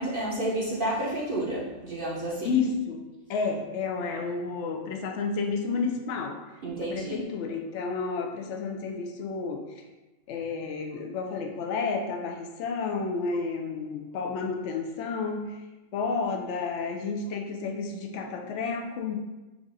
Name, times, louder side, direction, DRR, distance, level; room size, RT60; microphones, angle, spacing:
voice 1, 0.0-2.6 6.6-7.2, right 1 dB, 50° right, -6 dB, 0.8 m, -30 dB
voice 2, 2.4-3.0 3.3-6.4 6.9-9.8 10.3-15.6 15.9-19.2, left 4 dB, 65° left, 3 dB, 0.8 m, -31 dB
4.7 x 2.5 x 4.0 m, 1.1 s
omnidirectional pair, 1.4 m